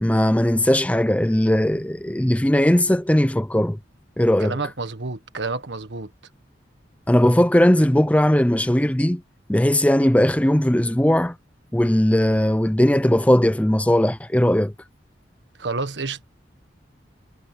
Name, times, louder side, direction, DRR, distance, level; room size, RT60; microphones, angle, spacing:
voice 1, 0.0-3.8 4.2-4.6 7.1-9.2 9.5-11.4 11.7-14.7, left 1 dB, 10° left, 0.6 m, -18 dB
voice 2, 4.4-6.1 15.6-16.2, right 3 dB, 75° right, 1.6 m, -29 dB
head